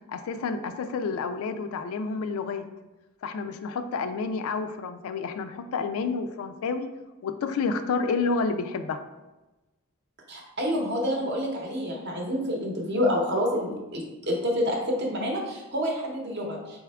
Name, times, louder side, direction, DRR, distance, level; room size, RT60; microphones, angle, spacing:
voice 1, 0.1-2.7 3.2-6.9 7.2-9.0, left 4 dB, 75° left, 9 dB, 0.3 m, -29 dB
voice 2, 10.3-16.8, equal, 50° right, 0 dB, 0.7 m, -28 dB
4.1 x 3.4 x 2.3 m, 1.1 s
head